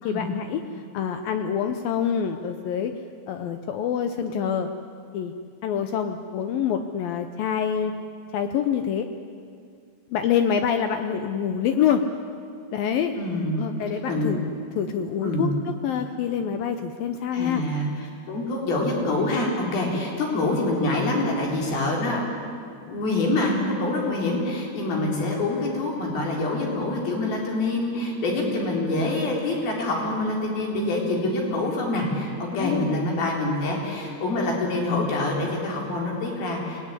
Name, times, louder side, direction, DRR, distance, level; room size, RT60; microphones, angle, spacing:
voice 1, 0.0-2.9 3.3-4.7 5.1-5.3 5.6-7.9 8.3-9.1 10.1-12.0 12.7-13.2 13.6-14.5 14.8-17.6 24.0-24.2 32.5-33.0, left 8 dB, 75° left, 8 dB, 2.1 m, -26 dB
voice 2, 13.2-13.6 14.1-14.3 15.2-15.5 17.3-22.3 22.9-36.8, left 2 dB, 55° left, -1 dB, 5.7 m, -26 dB
25.5 x 19.5 x 9.8 m, 2.3 s
omnidirectional pair, 5.2 m